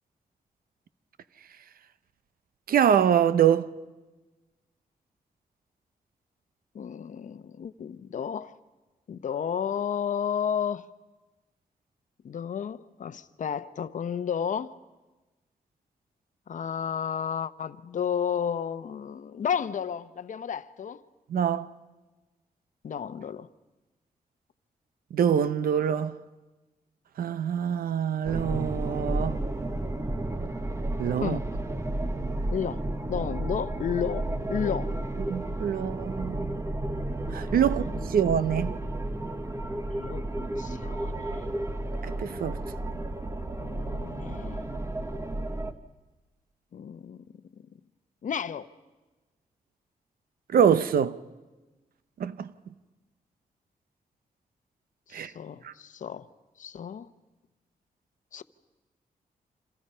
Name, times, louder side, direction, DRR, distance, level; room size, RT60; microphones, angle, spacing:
voice 1, 2.7-3.7 21.3-21.7 25.1-26.2 27.2-29.4 31.0-31.4 35.3-36.6 37.3-37.8 38.1-38.8 42.0-42.6 50.5-51.2 52.2-52.5 55.1-55.3 55.6-55.7, right 8 dB, 85° right, 0.8 m, -25 dB
voice 2, 6.7-8.5 9.1-10.9 12.2-14.7 16.5-21.0 22.8-23.5 31.2-31.4 32.5-32.8 33.1-34.9 39.9-41.5 43.6-44.7 46.7-47.2 47.5-47.6 48.2-48.7 55.1-56.3 56.6-57.1 58.3-58.4, left 8 dB, 60° left, 0.8 m, -32 dB
sound 1, 28.3-45.7, right 1 dB, 20° right, 1.1 m, -32 dB
28.0 x 27.0 x 5.6 m
wide cardioid pair, 130°, 15 cm